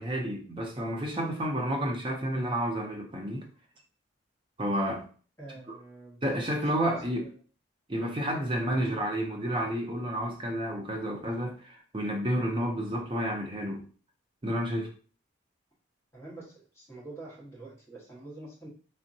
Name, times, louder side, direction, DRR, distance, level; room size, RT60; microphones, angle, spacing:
voice 1, 0.0-3.5 4.6-5.0 6.2-7.3 7.9-13.8 14.4-14.9, right 1 dB, 25° right, 0.5 m, -30 dB
voice 2, 5.4-6.4 6.8-7.3 8.8-9.0 16.1-18.7, right 2 dB, 10° left, 1.1 m, -46 dB
3.5 x 2.1 x 2.6 m
head